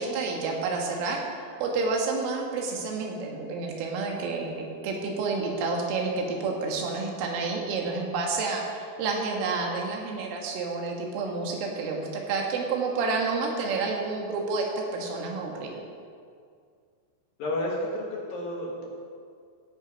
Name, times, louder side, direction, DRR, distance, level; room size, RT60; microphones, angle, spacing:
voice 1, 0.0-4.5 4.8-15.8, right 4 dB, 85° right, 0 dB, 4.2 m, -29 dB
voice 2, 17.4-18.9, left 1 dB, 55° left, -3 dB, 3.0 m, -31 dB
15.0 x 8.6 x 5.4 m, 2.2 s
omnidirectional pair, 5.5 m